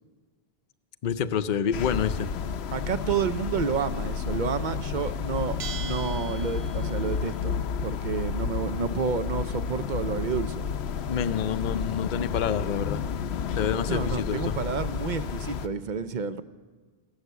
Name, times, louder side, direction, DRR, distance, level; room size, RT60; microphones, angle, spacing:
voice 1, 1.0-2.3 11.1-13.0 13.6-14.6, left 8 dB, 55° left, 11 dB, 0.7 m, -28 dB
sound 1, 1.7-15.7, left 6 dB, 85° left, 0.9 m, -31 dB
voice 2, 2.7-7.6 7.8-10.7 13.9-16.4, right 6 dB, 55° right, 12 dB, 0.7 m, -30 dB
Bell, 5.6-7.2, right 6 dB, 85° right, 1.0 m, -40 dB
14.5 x 11.5 x 8.1 m, 1.4 s
omnidirectional pair, 1.0 m